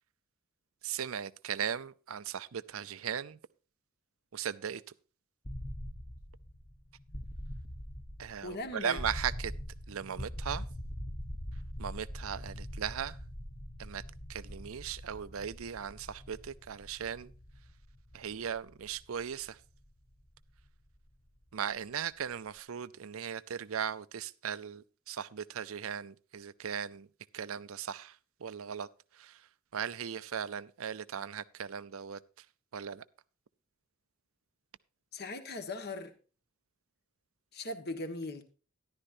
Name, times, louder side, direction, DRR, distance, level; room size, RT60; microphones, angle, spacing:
voice 1, 0.8-3.4 4.3-4.8 8.2-9.5 9.9-10.6 11.8-13.2 13.8-14.0 14.3-17.3 18.1-19.6 21.5-27.1 27.3-28.9 29.1-29.5 29.7-32.5 32.7-33.0, right 8 dB, 75° right, 0.5 m, -38 dB
sound 1, 5.4-21.3, equal, 20° left, 0.9 m, -43 dB
voice 2, 8.4-9.0 35.1-36.1 37.5-38.4, left 2 dB, 50° left, 1.5 m, -39 dB
13.5 x 11.5 x 2.6 m
head